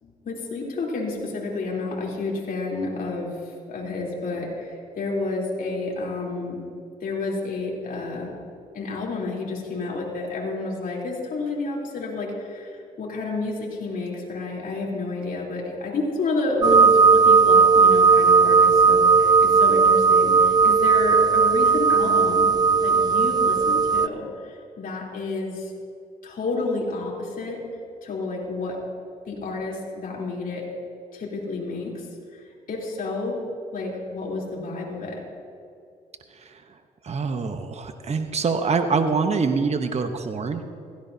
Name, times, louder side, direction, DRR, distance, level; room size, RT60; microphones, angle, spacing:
voice 1, 0.0-6.6 7.0-8.3 8.7-25.7 26.2-27.6 28.0-28.8 29.3-30.7 31.1-32.1 32.3-33.4 33.7-35.2, left 3 dB, 60° left, -3 dB, 3.6 m, -30 dB
sound 1, 16.6-24.1, right 5 dB, 25° right, 0.4 m, -16 dB
voice 2, 36.3-36.6 37.0-40.6, right 4 dB, 40° right, 7 dB, 1.0 m, -25 dB
16.5 x 15.0 x 2.8 m, 2.5 s
supercardioid pair, 55°, 16 cm